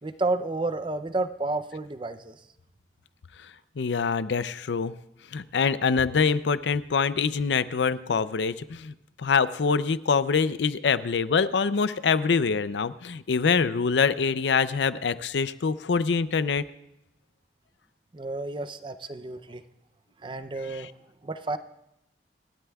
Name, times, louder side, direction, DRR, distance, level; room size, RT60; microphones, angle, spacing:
voice 1, 0.0-2.4 18.1-19.6 20.2-20.9 21.2-21.6, right 2 dB, 30° right, 12 dB, 0.5 m, -31 dB
voice 2, 3.8-4.9 5.3-16.6 20.7-20.8, left 5 dB, 85° left, 15 dB, 0.5 m, -25 dB
27.0 x 12.5 x 2.3 m, 0.86 s
head